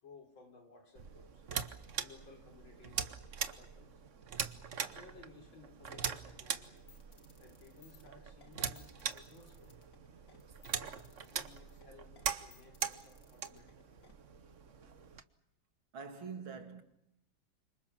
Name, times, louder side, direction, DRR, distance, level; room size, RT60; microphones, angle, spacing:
voice 1, 0.0-1.4 2.0-3.1 3.5-4.0 4.8-6.8 7.4-9.8 10.7-12.1 12.4-14.0, left 4 dB, 75° left, 4.5 m, -58 dB
sound 1, 0.9-15.2, right 7 dB, 45° right, 1.2 m, -42 dB
sound 2, 6.6-14.1, left 6 dB, 40° left, 2.4 m, -63 dB
voice 2, 15.9-16.8, right 5 dB, 85° right, 3.0 m, -45 dB
29.0 x 26.0 x 6.0 m
omnidirectional pair, 2.2 m